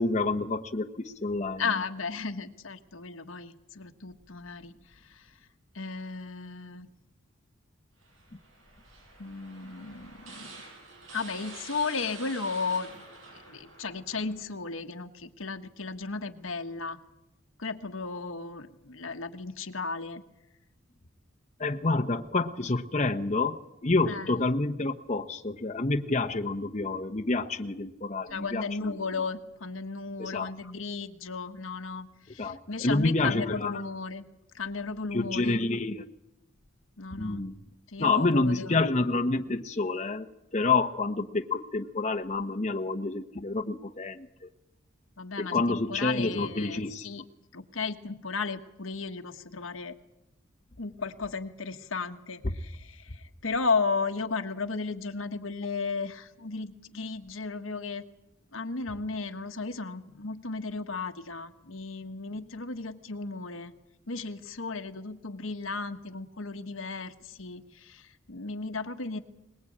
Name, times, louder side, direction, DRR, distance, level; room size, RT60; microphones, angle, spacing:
voice 1, 0.0-1.6 21.6-28.9 30.2-30.5 32.4-33.7 35.1-36.0 37.1-37.6 38.0-40.3 40.5-44.5 45.4-47.1, left 3 dB, 35° left, 7 dB, 0.9 m, -28 dB
voice 2, 1.6-5.3 5.7-6.9 9.2-10.6 11.1-13.0 13.3-17.0 17.6-20.2 24.1-24.4 28.3-34.3 34.5-35.6 37.0-37.4 37.9-38.8 45.2-47.2 47.5-49.9 50.8-58.0 58.5-63.7 64.1-69.2, left 4 dB, 90° left, 6 dB, 1.5 m, -35 dB
sound 1, 8.0-14.5, right 3 dB, 85° right, 7.8 m, -48 dB
22.0 x 20.5 x 8.6 m, 0.91 s
head